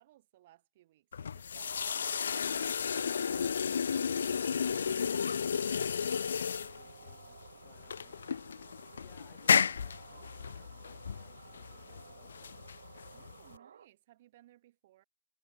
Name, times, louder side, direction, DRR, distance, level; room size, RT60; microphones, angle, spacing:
voice 1, 0.0-2.3 13.1-15.0, right 15 dB, 25° right, 3.6 m, -62 dB
sound 1, 1.1-13.6, left 7 dB, 45° left, 0.5 m, -33 dB
sound 2, 2.0-13.9, right 7 dB, 45° right, 3.1 m, -55 dB
sound 3, 4.8-5.5, left 3 dB, 80° left, 1.1 m, -48 dB
voice 2, 6.6-8.2 8.5-12.6, left 20 dB, 15° left, 3.6 m, -65 dB
figure-of-eight pair, 160°, 0 cm